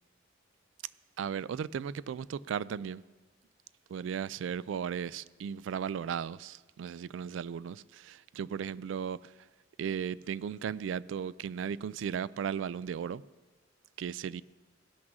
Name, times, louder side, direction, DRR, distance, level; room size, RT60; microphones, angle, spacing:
voice 1, 1.2-3.0 3.9-9.3 9.8-13.2 14.0-14.4, right 7 dB, 90° right, 0.3 m, -36 dB
16.0 x 6.2 x 6.1 m
head